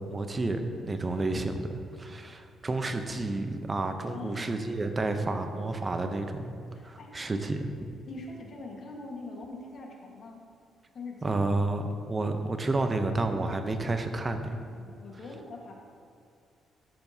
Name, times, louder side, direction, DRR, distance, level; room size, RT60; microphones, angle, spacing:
voice 1, 0.0-6.5 6.8-7.6 11.2-14.6, right 2 dB, 30° right, 7 dB, 0.7 m, -30 dB
voice 2, 4.1-4.5 6.7-7.1 8.0-10.4 10.9-11.4 14.7-15.7, left 3 dB, 55° left, 0 dB, 1.5 m, -43 dB
13.0 x 6.9 x 2.8 m, 2.4 s
cardioid pair, 90°, 0 cm